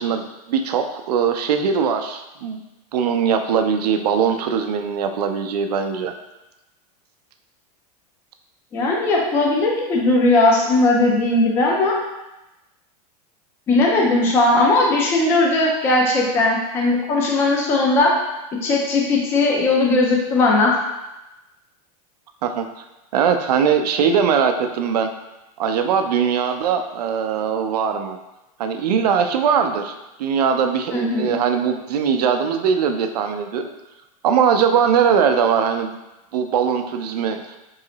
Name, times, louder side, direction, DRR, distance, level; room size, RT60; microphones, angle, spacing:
voice 1, 0.0-2.6 2.9-6.1 22.4-22.8 23.1-25.1 25.6-28.2 28.6-29.9 30.2-33.7 34.2-36.0 36.3-37.6, right 7 dB, 85° right, 6 dB, 0.5 m, -20 dB
voice 2, 8.7-12.0 13.7-18.2 18.6-20.7 30.9-31.4, left 2 dB, 10° left, -2 dB, 0.3 m, -18 dB
3.1 x 2.8 x 3.8 m, 0.98 s
supercardioid pair, 165°, 20 cm